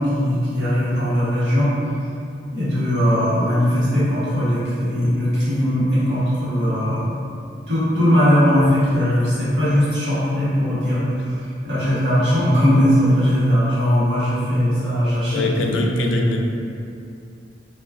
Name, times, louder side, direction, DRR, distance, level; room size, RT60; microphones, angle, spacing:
voice 1, 0.0-1.7 2.5-7.1 7.7-11.4 11.6-15.8, equal, 70° right, -10 dB, 1.1 m, -19 dB
voice 2, 15.3-16.4, left 2 dB, 90° left, 1 dB, 0.3 m, -21 dB
2.4 x 2.4 x 3.3 m, 2.5 s
head